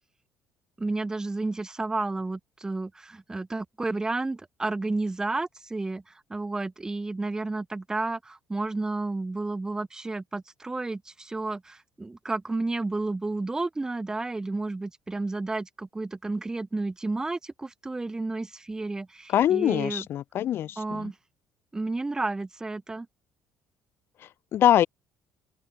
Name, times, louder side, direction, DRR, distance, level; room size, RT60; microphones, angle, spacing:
voice 1, 0.8-6.0 6.3-20.0 20.8-21.1 21.7-23.1, right 2 dB, 15° right, 1.4 m, -31 dB
voice 2, 19.3-21.1 24.2-24.9, left 11 dB, 55° left, 0.7 m, -24 dB
open air
cardioid pair, 120°, 5 cm